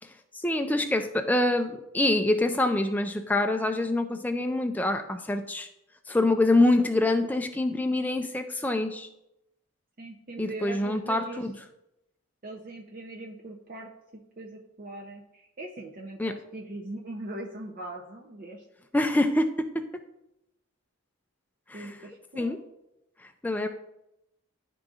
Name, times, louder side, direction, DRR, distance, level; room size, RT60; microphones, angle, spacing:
voice 1, 0.3-5.7 6.1-9.1 10.4-11.5 16.2-16.3 18.9-19.5 19.7-19.8 21.7-21.8 22.4-22.6 23.4-23.7, left 2 dB, 10° left, 6 dB, 0.3 m, -25 dB
voice 2, 10.0-11.5 12.4-18.6 21.7-22.6, right 2 dB, 40° right, -1 dB, 0.5 m, -41 dB
11.5 x 3.8 x 2.4 m, 0.86 s
head